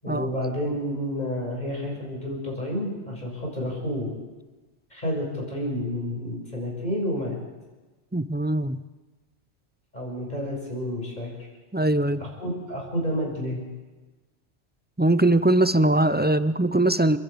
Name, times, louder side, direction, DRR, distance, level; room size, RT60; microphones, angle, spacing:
voice 1, 0.0-4.1 4.9-7.4 9.9-11.5 12.2-13.6, equal, 40° left, -1 dB, 6.5 m, -30 dB
voice 2, 8.1-8.8 11.7-12.2 15.0-17.2, right 1 dB, 15° right, 13 dB, 0.3 m, -21 dB
28.5 x 11.5 x 8.5 m, 1.2 s
omnidirectional pair, 1.2 m